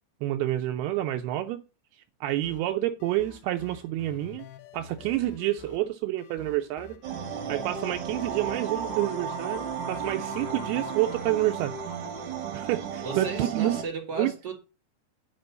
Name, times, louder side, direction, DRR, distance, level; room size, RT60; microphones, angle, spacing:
voice 1, 0.2-1.6 2.2-4.5 4.7-7.0 7.5-11.7 12.5-13.8 14.2-14.3, right 14 dB, 85° right, 2.5 m, -28 dB
sound 1, 2.4-11.3, left 9 dB, 90° left, 2.9 m, -48 dB
sound 2, 7.0-13.8, right 6 dB, 60° right, 2.7 m, -34 dB
voice 2, 13.0-14.5, right 4 dB, 25° right, 4.3 m, -35 dB
9.6 x 5.2 x 6.7 m
omnidirectional pair, 4.6 m